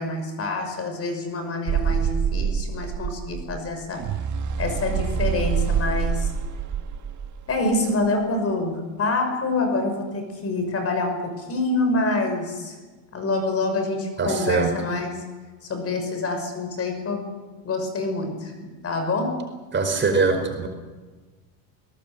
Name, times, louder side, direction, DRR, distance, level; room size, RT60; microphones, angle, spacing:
voice 1, 0.0-4.1 4.6-6.3 7.5-12.8 13.1-15.3 15.6-17.2 17.6-19.5, left 2 dB, 35° left, 6 dB, 5.8 m, -26 dB
sound 1, 1.7-7.8, right 7 dB, 45° right, 1.8 m, -26 dB
voice 2, 14.2-14.7 19.7-20.7, right 4 dB, 25° right, 5 dB, 5.0 m, -22 dB
21.0 x 19.0 x 8.9 m, 1.3 s
supercardioid pair, 115°, 41 cm